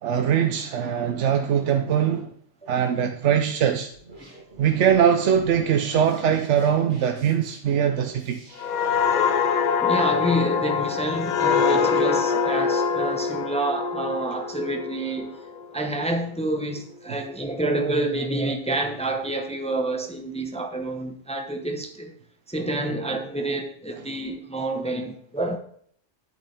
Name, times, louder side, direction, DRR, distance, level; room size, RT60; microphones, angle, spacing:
voice 1, 0.0-2.3 2.7-3.9 4.6-8.4 17.1-17.2, right 8 dB, 75° right, 1.0 m, -22 dB
sound 1, 3.9-9.4, right 2 dB, 40° right, 1.9 m, -47 dB
sound 2, 8.6-16.1 16.5-16.7, left 6 dB, 60° left, 0.5 m, -24 dB
voice 2, 9.8-15.3 15.7-22.1 22.5-25.6, right 1 dB, 5° left, 0.8 m, -28 dB
8.7 x 8.3 x 3.4 m
omnidirectional pair, 1.2 m